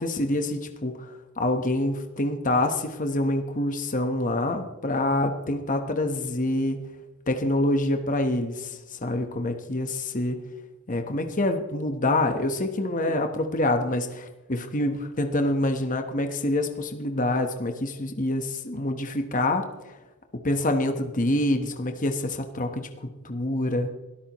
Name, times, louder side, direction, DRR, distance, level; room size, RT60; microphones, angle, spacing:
voice 1, 0.0-6.8 7.3-10.4 10.9-19.6 20.4-22.9 23.2-23.9, left 1 dB, 35° left, 5 dB, 1.2 m, -26 dB
23.5 x 13.0 x 3.1 m, 1.1 s
head